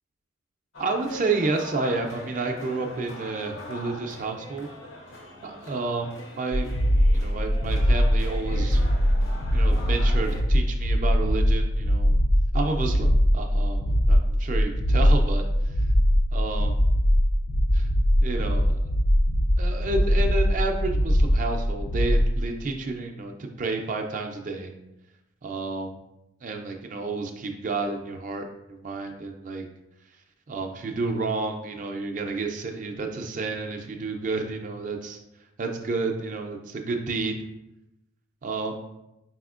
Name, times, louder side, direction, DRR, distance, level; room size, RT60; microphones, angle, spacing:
sound 1, 0.7-10.4, left 1 dB, 75° left, 0.8 m, -42 dB
voice 1, 0.8-4.7 5.4-6.7 7.1-8.8 9.5-12.1 12.5-15.7 16.3-16.7 17.7-17.9 18.2-18.9 19.6-24.7 25.4-25.9 26.4-29.6 30.5-35.2 35.6-37.4 38.4-38.8, right 3 dB, 40° right, 4 dB, 0.3 m, -30 dB
sound 2, 6.5-22.4, equal, 45° left, 0.4 m, -22 dB
4.2 x 4.1 x 2.4 m, 0.91 s
head